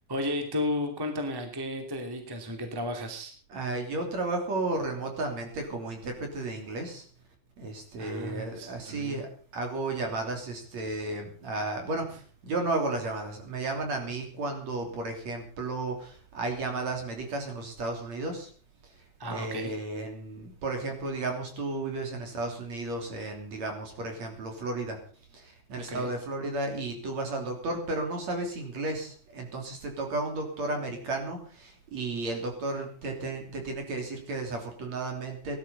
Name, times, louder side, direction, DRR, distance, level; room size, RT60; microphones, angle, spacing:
voice 1, 0.1-3.3 8.0-9.2 19.2-19.7 25.9-26.1, left 1 dB, 5° right, 4 dB, 2.2 m, -33 dB
voice 2, 3.5-7.1 7.6-9.3 9.5-18.5 18.9-19.0 19.3-25.0 25.3-35.6, right 2 dB, 50° right, 3 dB, 4.2 m, -33 dB
18.0 x 12.0 x 5.5 m, 0.44 s
omnidirectional pair, 4.2 m